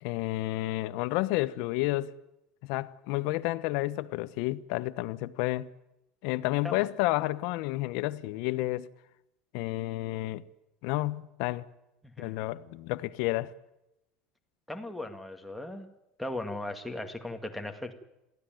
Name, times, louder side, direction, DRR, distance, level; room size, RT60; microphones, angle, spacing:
voice 1, 0.0-2.1 2.6-5.7 6.2-8.9 9.5-10.4 10.8-11.6 12.2-13.5, left 18 dB, 60° left, 1.1 m, -30 dB
voice 2, 14.7-15.9 16.2-17.9, left 1 dB, ahead, 2.1 m, -37 dB
23.0 x 15.5 x 9.2 m
cardioid pair, 165°, 0 cm